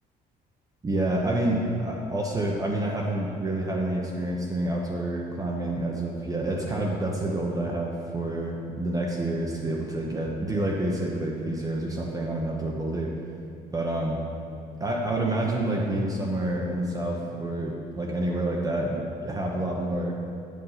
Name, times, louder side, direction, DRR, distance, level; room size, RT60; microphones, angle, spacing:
voice 1, 0.8-13.1 13.7-14.2 14.8-20.2, right 1 dB, 20° right, -2 dB, 1.0 m, -28 dB
8.7 x 5.6 x 5.7 m, 2.5 s
cardioid pair, 110°, 17 cm